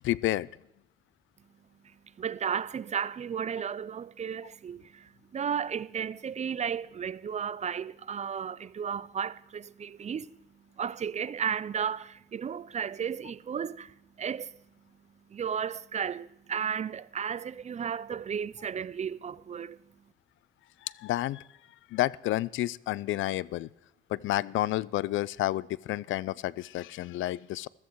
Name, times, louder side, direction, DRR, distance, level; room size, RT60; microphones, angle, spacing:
voice 1, 0.0-0.5 20.8-21.4 21.9-23.7 24.1-27.7, left 15 dB, 75° left, 0.4 m, -30 dB
voice 2, 2.2-10.3 10.8-14.6 15.3-19.8, right 7 dB, 35° right, 0.5 m, -34 dB
14.5 x 13.5 x 4.6 m
cardioid pair, 90°, 20 cm